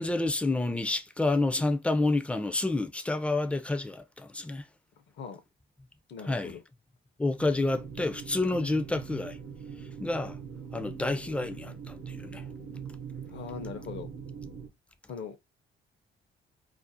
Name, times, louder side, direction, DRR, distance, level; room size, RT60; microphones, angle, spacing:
voice 1, 0.0-4.6 6.3-6.6 7.2-9.4 10.0-10.4 10.7-12.4, left 2 dB, 5° left, 0.3 m, -29 dB
voice 2, 6.1-6.6 13.3-14.1 15.1-15.4, left 6 dB, 65° left, 0.6 m, -40 dB
sound 1, 7.4-14.7, right 6 dB, 70° right, 0.7 m, -42 dB
2.5 x 2.0 x 2.5 m
cardioid pair, 90°, 20 cm